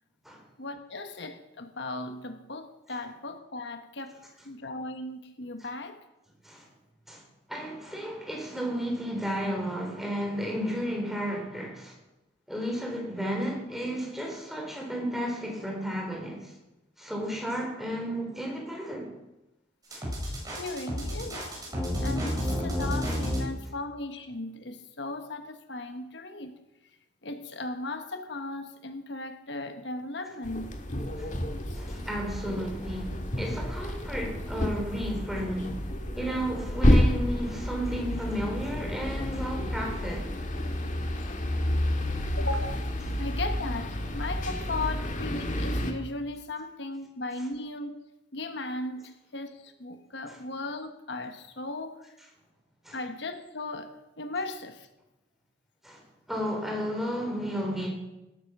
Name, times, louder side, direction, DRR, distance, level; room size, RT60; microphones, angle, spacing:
voice 1, 0.6-4.2 4.4-6.0 20.6-21.8 22.0-26.5 27.2-30.7 42.4-42.9 43.2-47.9 48.3-52.1 52.9-54.9, left 2 dB, 65° left, 7 dB, 1.2 m, -37 dB
voice 2, 7.5-11.9 12.5-16.5 17.0-19.1 19.9-20.1 31.2-31.3 31.7-35.9 36.1-40.3 50.3-50.4 52.8-53.0 55.8-56.0 56.3-57.9, equal, ahead, 0 dB, 3.8 m, -33 dB
sound 1, 19.9-23.5, equal, 20° right, 6.5 m, -30 dB
sound 2, 30.4-45.9, left 1 dB, 40° left, 1.7 m, -29 dB
18.5 x 13.0 x 6.0 m, 0.97 s
head